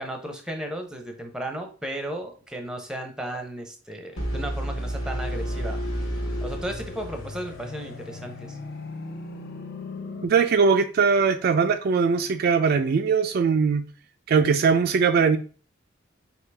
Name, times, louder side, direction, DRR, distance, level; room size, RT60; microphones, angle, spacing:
voice 1, 0.0-5.8 6.4-8.6, right 1 dB, 5° right, 0.6 m, -35 dB
sound 1, 4.2-8.0, equal, 90° left, 1.5 m, -31 dB
sound 2, 5.3-10.3, left 3 dB, 55° left, 0.6 m, -39 dB
voice 2, 10.2-13.8 14.3-15.4, right 5 dB, 50° right, 0.3 m, -20 dB
4.7 x 2.8 x 3.3 m
head